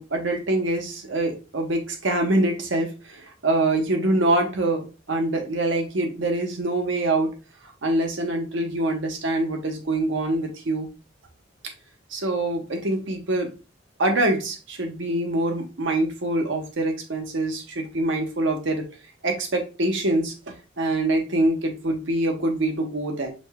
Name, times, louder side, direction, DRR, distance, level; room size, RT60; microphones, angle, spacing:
voice 1, 0.0-7.3 7.6-10.9 11.6-11.7 12.1-13.5 14.0-18.9 19.2-23.3, right 2 dB, 65° right, 0.9 m, -25 dB
5.1 x 2.2 x 3.5 m
head